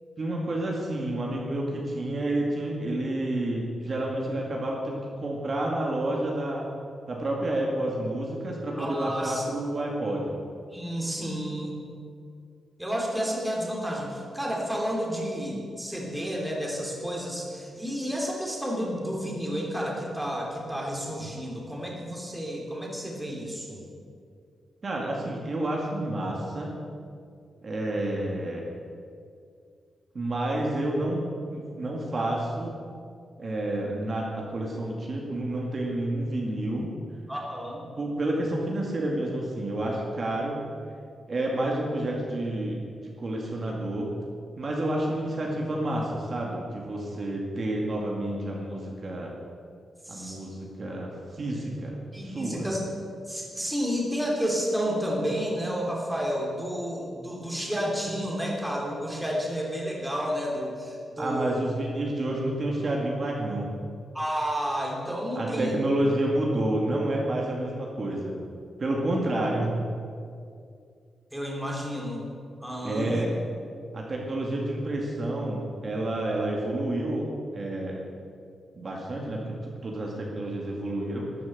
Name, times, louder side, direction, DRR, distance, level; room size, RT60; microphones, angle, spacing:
voice 1, 0.2-6.6 7.1-10.3 24.8-26.7 27.6-28.7 30.1-32.8 33.4-36.9 38.0-40.6 41.3-42.8 43.2-44.1 44.6-49.3 50.1-52.0 52.2-52.7 61.2-63.7 65.3-68.3 68.8-69.7 72.8-73.3 73.9-78.0 78.8-79.6 79.8-81.3, right 1 dB, 40° right, -1 dB, 2.2 m, -29 dB
voice 2, 8.7-9.4 10.7-11.8 12.8-23.8 37.3-37.8 50.0-50.4 52.1-52.8 53.3-61.6 64.1-65.8 71.3-72.3 72.6-73.2, equal, 5° right, -2 dB, 2.9 m, -31 dB
13.0 x 9.4 x 7.8 m, 2.3 s
wide cardioid pair, 125°, 0 cm